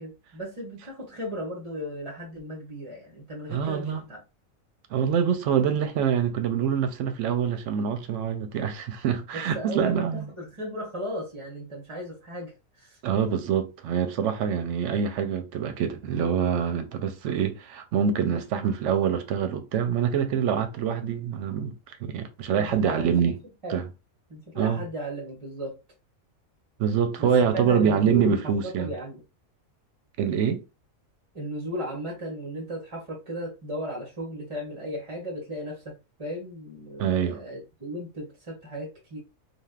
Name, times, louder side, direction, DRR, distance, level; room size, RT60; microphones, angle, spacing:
voice 1, 0.0-4.2 9.3-13.0 22.6-23.3 23.6-23.8 24.3-25.8 27.2-29.2 31.3-39.2, equal, 30° right, 0.7 m, -36 dB
voice 2, 3.5-4.0 4.9-10.2 13.0-21.7 22.0-23.3 23.7-23.8 24.6-24.8 26.8-28.9 30.2-30.6 37.0-37.4, right 7 dB, 70° right, 0.9 m, -25 dB
3.3 x 2.5 x 2.4 m
omnidirectional pair, 1.4 m